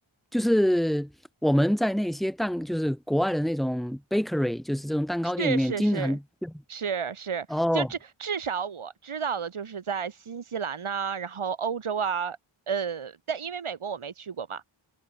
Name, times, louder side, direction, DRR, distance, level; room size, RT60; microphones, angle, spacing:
voice 1, 0.3-1.1 1.4-6.5 7.5-7.9, equal, ahead, 0.7 m, -25 dB
voice 2, 5.2-6.2 6.7-12.4 12.7-14.7, right 6 dB, 85° right, 1.3 m, -32 dB
wide cardioid pair, 65°, 49 cm